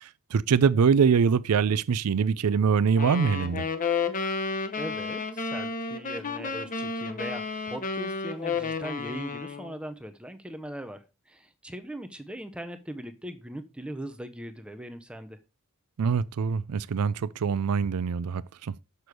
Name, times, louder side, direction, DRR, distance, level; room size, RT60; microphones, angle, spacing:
voice 1, 0.0-3.7 16.0-18.7, right 6 dB, 80° right, 0.4 m, -24 dB
sound 1, 2.9-9.8, left 4 dB, 35° left, 0.8 m, -32 dB
voice 2, 4.8-15.4, right 1 dB, 5° right, 0.6 m, -40 dB
6.7 x 6.1 x 4.8 m
head